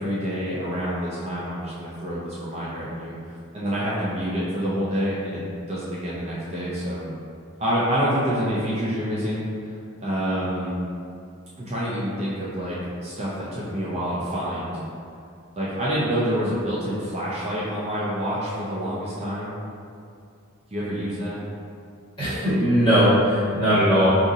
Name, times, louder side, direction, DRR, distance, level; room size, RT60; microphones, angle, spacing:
voice 1, 0.0-5.4 5.7-7.0 7.6-10.7 11.6-14.7 15.6-19.5 20.7-21.4, equal, 30° right, -8 dB, 0.4 m, -27 dB
voice 2, 22.2-24.1, equal, 25° left, -12 dB, 1.3 m, -19 dB
2.6 x 2.6 x 3.8 m, 2.4 s
head